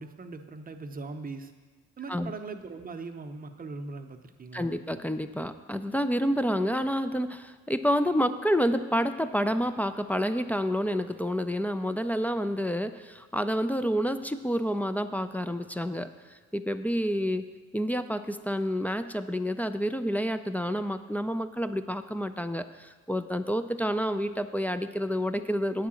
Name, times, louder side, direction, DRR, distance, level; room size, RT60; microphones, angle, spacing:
voice 1, 0.0-1.5 2.0-4.7, right 3 dB, 30° right, 6 dB, 0.7 m, -40 dB
voice 2, 4.5-17.5 17.7-25.9, equal, 5° left, 10 dB, 0.3 m, -29 dB
8.1 x 4.8 x 7.5 m, 1.4 s
cardioid pair, 90°, 30 cm